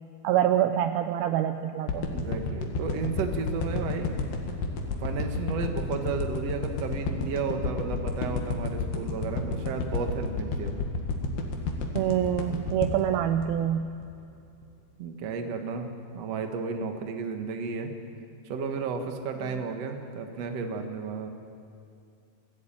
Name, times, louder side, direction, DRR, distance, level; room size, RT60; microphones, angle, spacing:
voice 1, 0.2-2.1 12.0-13.9 19.5-19.6, right 11 dB, 80° right, 8 dB, 2.4 m, -26 dB
sound 1, 1.9-14.2 14.6-14.7, left 3 dB, 85° left, 4.0 m, -31 dB
voice 2, 2.1-4.2 5.0-10.8 15.0-15.9 16.1-17.9 18.5-21.3, right 5 dB, 50° right, 5 dB, 2.2 m, -33 dB
24.5 x 16.0 x 9.0 m, 2.5 s
omnidirectional pair, 4.6 m